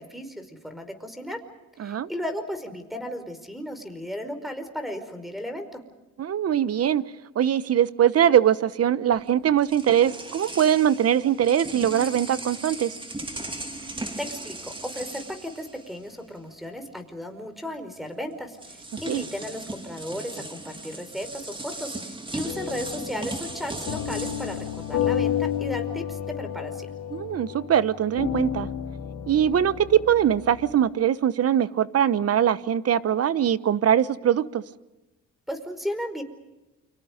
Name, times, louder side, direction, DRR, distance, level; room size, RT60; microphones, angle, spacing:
voice 1, 0.0-1.4 1.8-5.8 13.8-13.9 14.2-26.9 35.5-36.2, equal, ahead, 9 dB, 5.1 m, -35 dB
voice 2, 1.8-2.1 6.2-7.0 7.3-12.9 19.1-19.2 27.1-28.7 29.3-34.6, right 10 dB, 50° right, 16 dB, 1.1 m, -22 dB
sound 1, 9.1-16.4 16.7-16.9 18.0-18.1 18.5-25.7, right 2 dB, 15° right, 2.9 m, -38 dB
sound 2, 22.4-30.8, left 10 dB, 75° left, 3.5 m, -31 dB
29.5 x 25.5 x 5.3 m, 1.0 s
cardioid pair, 90°, 30 cm